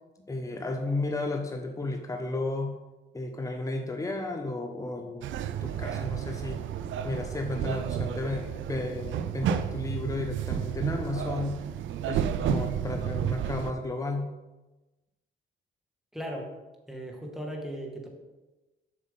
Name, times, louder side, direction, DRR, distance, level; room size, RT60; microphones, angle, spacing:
voice 1, 0.3-2.8 3.1-5.3 5.6-6.6 7.0-11.6 12.1-14.3, left 2 dB, 15° left, 3 dB, 1.0 m, -33 dB
sound 1, 5.2-13.7, right 9 dB, 75° right, 0.6 m, -31 dB
voice 2, 16.1-16.5 16.9-18.1, equal, ahead, 0 dB, 2.1 m, -37 dB
7.8 x 6.3 x 5.6 m, 1.1 s
cardioid pair, 90°, 20 cm